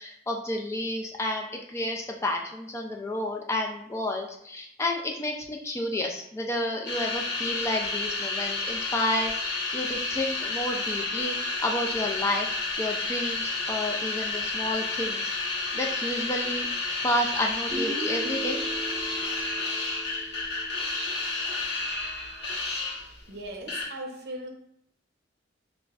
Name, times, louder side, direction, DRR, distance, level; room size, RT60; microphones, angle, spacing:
voice 1, 0.0-11.3 11.6-12.5 12.8-15.2 15.7-16.7 17.0-18.6, left 1 dB, 15° left, 2 dB, 0.3 m, -30 dB
sound 1, 6.9-23.2 23.7-23.9, left 3 dB, 65° left, 1.1 m, -31 dB
Guitar, 17.7-21.7, right 2 dB, 5° right, 1.0 m, -38 dB
voice 2, 23.3-24.5, right 1 dB, 55° right, 2 dB, 0.7 m, -38 dB
6.8 x 2.5 x 2.4 m, 0.72 s
head